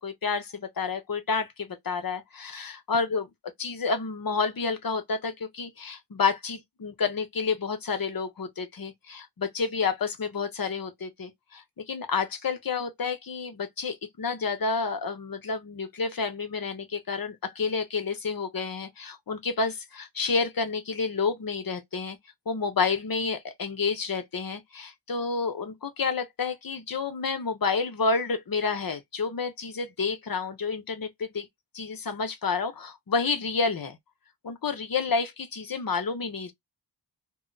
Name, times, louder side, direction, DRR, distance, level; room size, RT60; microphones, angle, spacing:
voice 1, 0.0-3.3 3.6-22.2 22.5-31.5 31.7-34.0 34.4-36.5, left 4 dB, 50° left, 1.0 m, -29 dB
2.4 x 2.2 x 3.9 m
cardioid pair, 55°, 45 cm